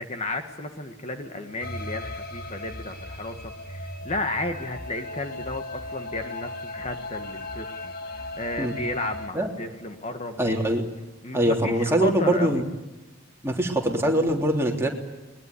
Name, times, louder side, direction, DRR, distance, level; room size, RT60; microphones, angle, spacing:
voice 1, 0.0-10.7 11.2-12.6, left 2 dB, 35° left, 6 dB, 1.6 m, -33 dB
sound 1, 1.6-9.3, left 1 dB, 50° left, 2.0 m, -37 dB
voice 2, 10.4-10.8 11.3-12.6 13.4-14.9, right 1 dB, 15° right, 0 dB, 3.4 m, -23 dB
21.0 x 21.0 x 9.8 m, 1.1 s
head